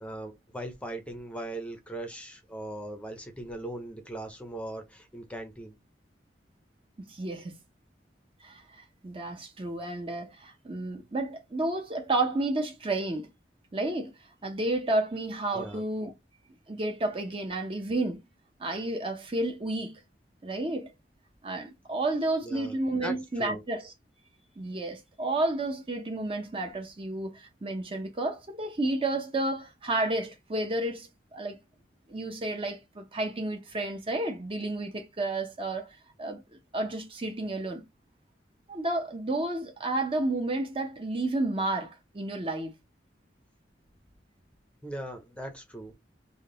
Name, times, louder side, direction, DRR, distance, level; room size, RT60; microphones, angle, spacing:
voice 1, 0.0-5.7 15.5-15.8 22.4-23.6 44.8-45.9, right 1 dB, 5° left, 0.6 m, -39 dB
voice 2, 7.0-7.6 8.4-13.3 13.7-14.1 14.4-16.1 16.7-18.2 18.6-19.9 20.4-20.9 21.4-23.9 24.6-31.6 32.1-36.4 36.7-37.8 38.7-42.7, right 2 dB, 30° right, 0.6 m, -31 dB
3.6 x 2.2 x 3.7 m
head